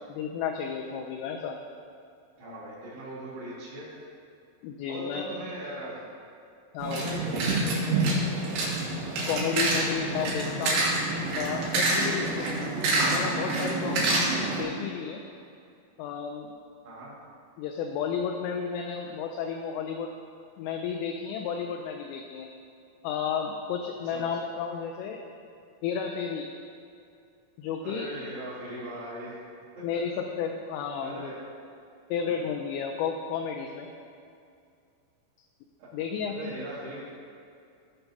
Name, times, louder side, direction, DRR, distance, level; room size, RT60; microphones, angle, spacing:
voice 1, 0.1-1.6 4.6-5.3 6.7-7.0 9.3-10.9 11.4-12.7 13.1-15.2 16.0-16.6 17.6-20.1 20.6-22.5 23.0-25.2 25.8-26.5 27.6-28.1 29.8-31.2 32.1-33.9 35.9-36.5, left 7 dB, 85° left, 2 dB, 3.0 m, -32 dB
voice 2, 2.4-3.9 4.9-6.0 6.8-8.1 16.8-17.1 24.0-24.2 27.8-29.4 29.8-29.9 31.0-31.4 32.2-32.4 36.3-37.0, right 1 dB, 60° right, -13 dB, 3.7 m, -39 dB
sound 1, 6.8-14.6, right 2 dB, 90° right, 4.3 m, -27 dB
16.5 x 5.8 x 2.7 m, 2.4 s
omnidirectional pair, 5.9 m